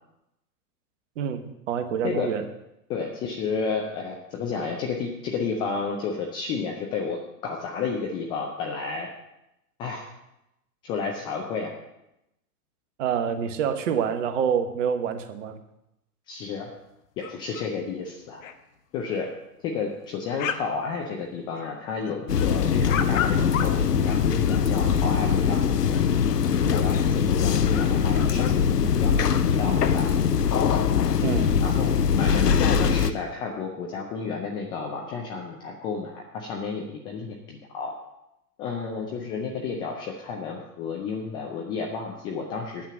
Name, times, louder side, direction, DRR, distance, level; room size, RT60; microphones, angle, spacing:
voice 1, 1.2-2.4 13.0-15.6 31.2-31.5, right 7 dB, 50° right, 8 dB, 1.3 m, -27 dB
voice 2, 2.9-9.1 9.8-10.1 10.8-11.7 16.3-16.7 17.2-18.4 18.9-19.3 19.6-26.0 26.4-30.1 31.6-38.0 38.6-42.9, left 5 dB, 10° left, 1 dB, 0.4 m, -31 dB
sound 1, 17.2-17.7 18.0-18.1 18.3-18.5 19.2-19.3 19.7-20.7 21.0-21.7 22.0-24.6 25.6-26.4 26.7-26.8 27.4-27.5 27.7-28.6, left 8 dB, 55° left, 1.1 m, -34 dB
sound 2, 22.3-33.1, left 7 dB, 85° left, 0.8 m, -22 dB
9.2 x 7.3 x 7.5 m, 0.88 s
figure-of-eight pair, 110°, 47 cm